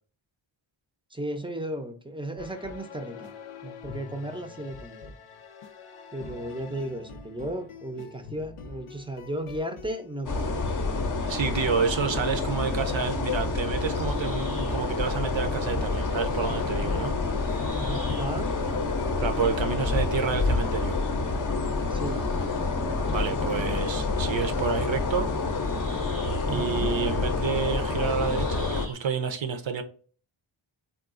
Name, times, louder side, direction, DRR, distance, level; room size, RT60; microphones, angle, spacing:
voice 1, 1.1-3.3 3.6-5.1 6.1-10.5 17.8-18.6 21.9-22.2 26.5-26.9, right 1 dB, 10° right, 0.5 m, -35 dB
sound 1, 2.4-19.5, left 4 dB, 85° left, 0.6 m, -45 dB
sound 2, 10.3-28.9, left 3 dB, 40° left, 0.5 m, -28 dB
voice 2, 11.2-17.2 19.2-21.0 23.1-25.3 26.4-29.8, right 6 dB, 65° right, 0.7 m, -29 dB
sound 3, 13.9-28.9, right 2 dB, 90° right, 1.0 m, -50 dB
3.7 x 2.3 x 2.4 m
wide cardioid pair, 80°, 49 cm